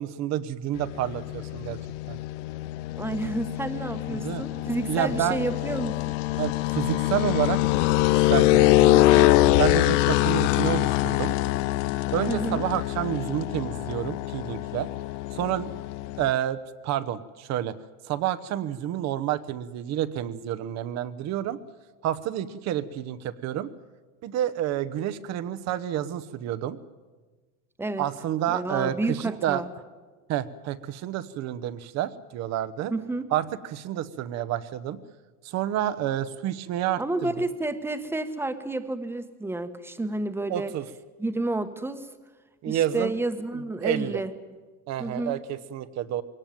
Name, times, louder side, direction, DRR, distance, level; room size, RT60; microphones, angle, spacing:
voice 1, 0.0-1.8 2.1-2.2 4.1-4.4 4.9-5.4 6.4-7.6 8.1-9.3 9.6-11.3 12.1-14.9 15.3-15.7 16.2-16.6 16.8-17.8 18.0-21.6 22.0-23.7 24.2-26.8 28.0-29.6 30.3-32.9 33.3-35.0 35.4-37.3 40.5-40.8 42.6-43.1 43.5-44.2 44.9-46.2, right 11 dB, 45° right, 12 dB, 1.1 m, -29 dB
sound 1, 0.7-16.3, left 18 dB, 80° left, 0.7 m, -24 dB
voice 2, 3.0-6.2 12.3-12.6 27.8-28.1 28.5-29.7 32.9-33.3 37.0-40.7 41.2-42.1 42.7-44.3 45.0-45.4, right 2 dB, 5° right, 9 dB, 1.2 m, -30 dB
22.0 x 18.0 x 9.2 m, 1.3 s
supercardioid pair, 140°, 36 cm